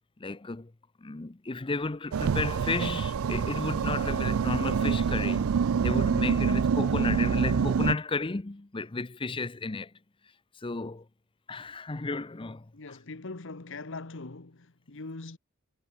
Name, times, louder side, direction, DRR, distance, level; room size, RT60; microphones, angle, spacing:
voice 1, 0.2-0.7 1.0-5.6 5.8-9.9 10.6-11.0 11.5-12.6, left 3 dB, 25° left, 0.7 m, -33 dB
sound 1, 2.1-7.9, right 6 dB, 75° right, 0.4 m, -26 dB
voice 2, 6.1-6.4 12.7-15.4, left 3 dB, 60° left, 1.3 m, -42 dB
head